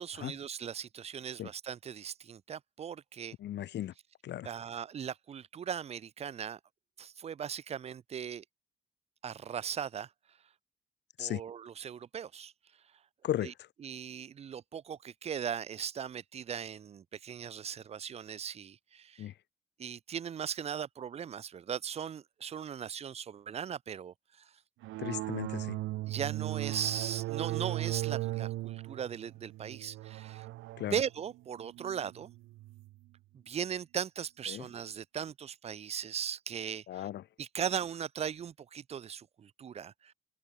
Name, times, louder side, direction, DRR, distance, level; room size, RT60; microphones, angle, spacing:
voice 1, 0.0-3.3 4.4-6.6 7.0-8.4 9.2-10.1 11.2-12.5 13.4-13.5 13.8-19.3 19.8-24.5 26.1-30.5 30.9-32.3 33.3-37.1 37.4-40.1, right 8 dB, 30° right, 0.4 m, -38 dB
voice 2, 3.4-3.9 4.2-4.5 11.2-11.4 13.2-13.5 19.2-19.3 25.0-25.8 30.8-30.9 34.5-34.6 36.9-37.2, left 12 dB, 60° left, 0.6 m, -35 dB
sound 1, 24.8-32.9, right 17 dB, 85° right, 0.5 m, -37 dB
cardioid pair, 90°, 20 cm